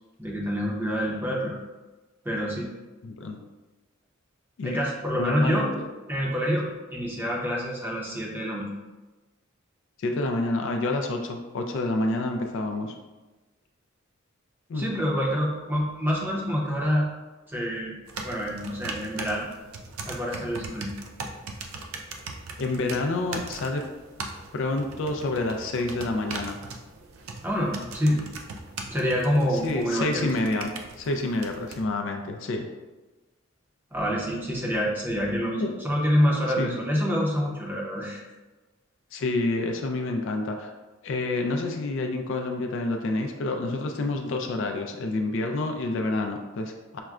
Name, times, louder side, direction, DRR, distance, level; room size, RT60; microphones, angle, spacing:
voice 1, 0.2-1.6 2.2-2.7 4.6-5.7 6.1-8.7 14.7-17.1 17.5-18.0 18.2-19.4 20.1-20.9 27.4-28.2 28.9-30.3 33.9-38.3, equal, 10° right, -4 dB, 0.6 m, -27 dB
voice 2, 3.0-3.4 4.6-4.8 5.2-5.9 10.0-12.9 14.7-14.9 22.6-23.8 24.5-26.6 29.6-30.7 31.0-32.7 35.6-35.7 36.6-36.8 39.1-40.7 41.0-47.0, left 2 dB, 65° left, 4 dB, 0.4 m, -28 dB
sound 1, 18.1-31.8, right 3 dB, 90° right, 0.4 m, -40 dB
5.7 x 2.1 x 2.4 m, 1.2 s
head